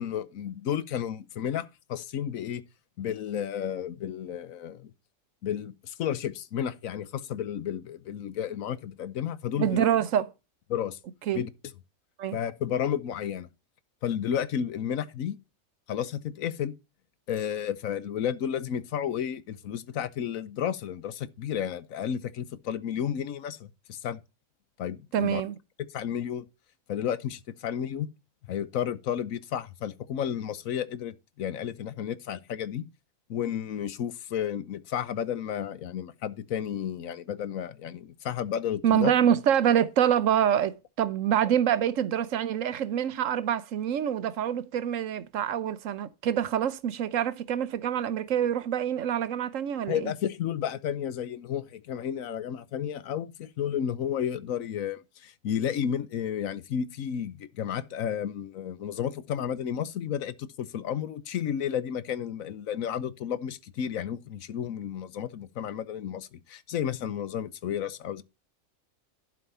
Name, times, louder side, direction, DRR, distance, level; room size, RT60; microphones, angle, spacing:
voice 1, 0.0-2.6 3.0-4.9 5.4-9.9 10.7-11.0 11.3-11.5 12.3-13.5 14.0-15.4 15.9-16.7 17.3-24.2 24.8-25.4 25.8-26.5 26.9-28.1 28.5-32.9 33.3-39.1 49.9-68.2, left 9 dB, 75° left, 1.2 m, -32 dB
voice 2, 9.6-10.3 11.3-11.4 12.2-12.4 25.1-25.6 38.8-50.1, right 9 dB, 70° right, 1.1 m, -26 dB
11.5 x 5.1 x 5.5 m
omnidirectional pair, 1.4 m